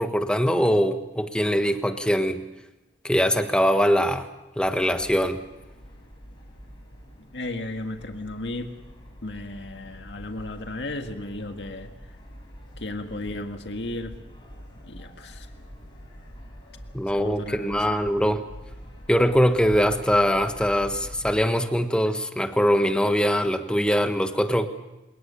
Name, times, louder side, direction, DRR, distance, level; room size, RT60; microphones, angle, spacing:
voice 1, 0.0-2.4 3.0-4.3 4.6-5.4 16.9-18.4 19.1-24.7, equal, 5° left, 7 dB, 1.4 m, -22 dB
sound 1, 4.6-21.4, equal, 25° left, 7.9 m, -45 dB
voice 2, 7.3-8.7 9.2-11.9 12.8-14.2 14.8-15.5 17.1-17.9, left 2 dB, 75° left, 5 dB, 1.8 m, -34 dB
29.5 x 19.0 x 7.0 m, 1.0 s
head